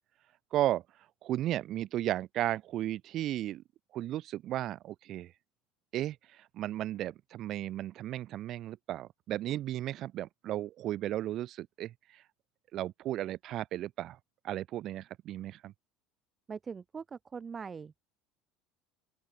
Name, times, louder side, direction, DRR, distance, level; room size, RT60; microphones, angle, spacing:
voice 1, 0.5-0.8 1.2-3.6 3.9-5.3 5.9-12.2 12.7-14.2 14.4-15.7, right 13 dB, 40° right, 0.7 m, -34 dB
voice 2, 16.5-18.0, right 6 dB, 20° right, 2.8 m, -42 dB
open air
cardioid pair, 155°, 0 cm